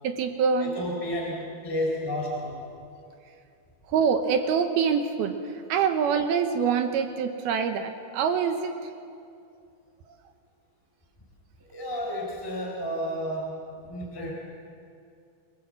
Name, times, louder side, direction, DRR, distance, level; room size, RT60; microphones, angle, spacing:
voice 1, 0.0-0.8 3.9-5.4 5.7-8.7, right 6 dB, 70° right, 7 dB, 2.6 m, -25 dB
voice 2, 0.6-2.6 11.7-13.6 13.9-14.3, equal, 5° left, -2 dB, 3.3 m, -31 dB
26.5 x 19.5 x 7.7 m, 2.5 s
omnidirectional pair, 5.1 m